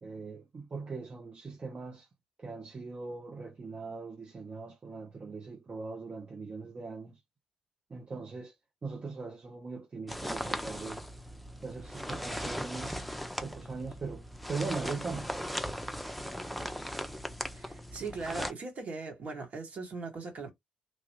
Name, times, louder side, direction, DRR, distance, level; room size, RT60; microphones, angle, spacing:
voice 1, 0.0-2.1 2.4-7.2 7.9-8.6 8.8-11.0 11.6-13.2 13.4-15.3, right 4 dB, 35° right, 0.7 m, -40 dB
sound 1, 10.1-18.5, equal, ahead, 0.6 m, -38 dB
voice 2, 17.5-20.5, right 4 dB, 55° right, 1.6 m, -39 dB
3.0 x 2.3 x 3.0 m
hypercardioid pair, 50°, 3 cm